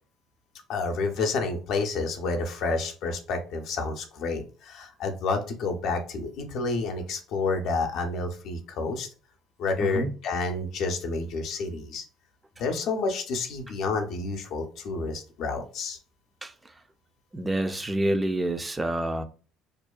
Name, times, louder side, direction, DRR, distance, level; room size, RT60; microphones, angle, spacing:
voice 1, 0.7-9.1 9.6-12.0 12.6-16.0, left 3 dB, 65° left, 0.5 m, -29 dB
voice 2, 9.8-10.1 16.4-16.5 17.3-19.2, right 1 dB, 15° right, 0.4 m, -27 dB
2.4 x 2.2 x 2.3 m
supercardioid pair, 85°, 0 cm